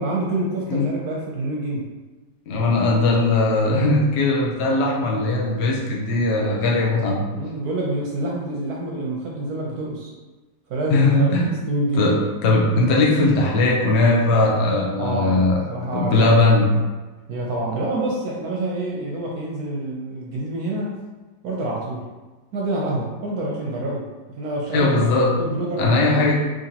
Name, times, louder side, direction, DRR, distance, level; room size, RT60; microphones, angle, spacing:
voice 1, 0.0-1.8 7.3-10.1 10.7-12.1 15.0-16.4 17.3-21.0 21.4-22.0 22.5-24.1 24.4-26.5, right 2 dB, 70° right, -3 dB, 0.9 m, -27 dB
voice 2, 2.5-7.2 10.9-11.5 12.0-15.6 15.9-16.7 24.7-25.3 25.8-26.4, left 2 dB, 65° left, -2 dB, 0.6 m, -19 dB
3.8 x 3.1 x 2.8 m, 1.2 s
omnidirectional pair, 2.0 m